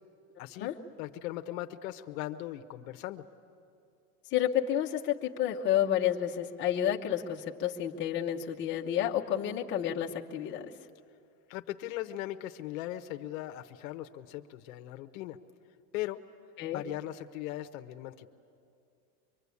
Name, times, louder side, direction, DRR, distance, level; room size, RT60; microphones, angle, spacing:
voice 1, 0.4-0.7 1.0-3.2 11.5-15.4 15.9-16.2 16.7-18.3, left 14 dB, 60° left, 7 dB, 0.9 m, -39 dB
voice 2, 4.3-10.7 16.6-16.8, left 10 dB, 25° left, -1 dB, 0.9 m, -30 dB
24.5 x 23.0 x 8.4 m, 2.5 s
supercardioid pair, 165°, 47 cm